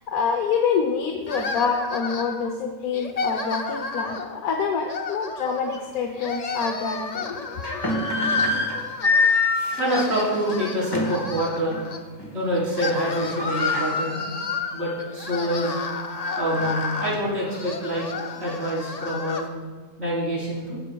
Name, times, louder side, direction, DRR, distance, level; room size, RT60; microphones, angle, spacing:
voice 1, 0.1-7.8, left 5 dB, 90° left, 4 dB, 1.3 m, -26 dB
sound 1, 1.3-2.5 2.9-4.4 4.8-5.8 6.1-9.4 9.7-12.0 12.5-19.5, left 4 dB, 50° left, 0.4 m, -33 dB
sound 2, 5.7-5.8 6.4-6.5 7.4-11.3 11.7-11.9 12.2-12.6 12.9-13.0 13.1-15.1 15.5-15.6 16.2-17.6, left 3 dB, 20° left, 1.3 m, -25 dB
voice 2, 9.8-11.8 12.3-14.3 14.7-15.8 16.4-19.5 20.0-20.8, equal, 50° right, -6 dB, 3.8 m, -26 dB
15.5 x 9.8 x 2.3 m, 1.4 s
omnidirectional pair, 1.5 m